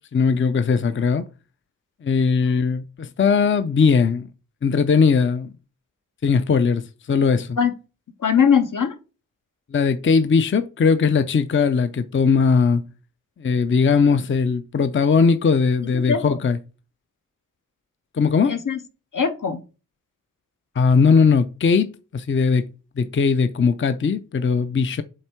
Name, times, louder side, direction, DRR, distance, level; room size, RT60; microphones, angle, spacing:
voice 1, 0.1-1.3 2.0-4.3 4.6-5.5 6.2-7.6 9.7-12.8 13.4-16.6 18.1-18.5 20.8-22.7 23.0-25.0, left 5 dB, 35° left, 0.5 m, -19 dB
voice 2, 8.2-8.9 15.9-16.4 18.4-18.8 19.1-19.6, left 7 dB, 70° left, 1.0 m, -20 dB
7.8 x 3.6 x 4.4 m
wide cardioid pair, 55°, 33 cm